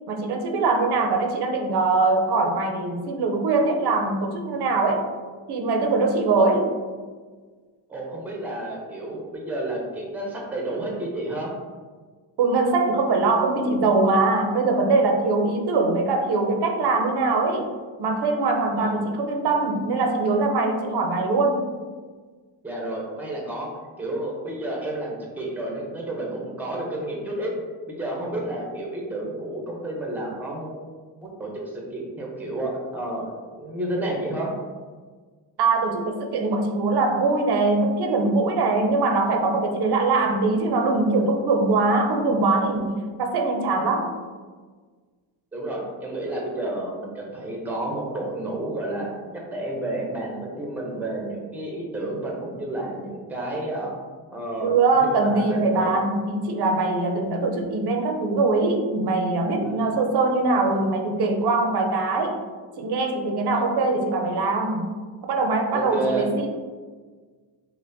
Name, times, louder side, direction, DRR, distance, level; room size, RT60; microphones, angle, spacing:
voice 1, 0.1-5.1 5.5-6.7 12.4-17.7 18.0-21.7 35.6-44.1 54.6-62.4 62.8-64.9 65.3-66.5, right 3 dB, 55° right, 3 dB, 0.6 m, -22 dB
voice 2, 7.9-11.5 18.8-18.9 22.6-23.7 24.0-27.5 27.9-30.7 31.2-34.5 45.5-49.1 49.5-53.9 54.3-54.8 55.2-55.9 59.6-59.9 65.7-66.3, right 1 dB, 5° right, -2 dB, 0.6 m, -30 dB
5.5 x 2.1 x 2.6 m, 1.5 s
cardioid pair, 125°, 49 cm